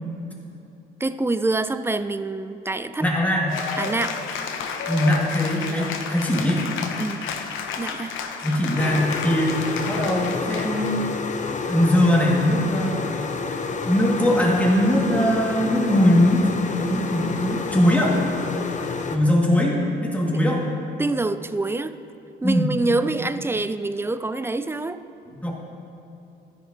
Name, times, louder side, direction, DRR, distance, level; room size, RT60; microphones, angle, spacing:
voice 1, 1.0-3.1 3.8-4.2 7.0-7.2 7.8-8.2 20.3-20.4 21.0-22.0 22.4-25.0, right 2 dB, 10° right, 12 dB, 0.3 m, -26 dB
voice 2, 3.0-3.5 4.9-6.7 8.4-10.9 11.7-13.0 13.8-16.4 16.9-18.2 19.1-20.7 22.4-22.7 25.4-25.5, left 1 dB, 5° left, -3 dB, 2.1 m, -21 dB
Cheering / Applause, 3.5-11.0, left 6 dB, 90° left, 0.8 m, -32 dB
sound 1, 8.8-19.2, left 4 dB, 40° left, 0.8 m, -29 dB
13.5 x 10.0 x 2.9 m, 2.8 s
cardioid pair, 90°, 20 cm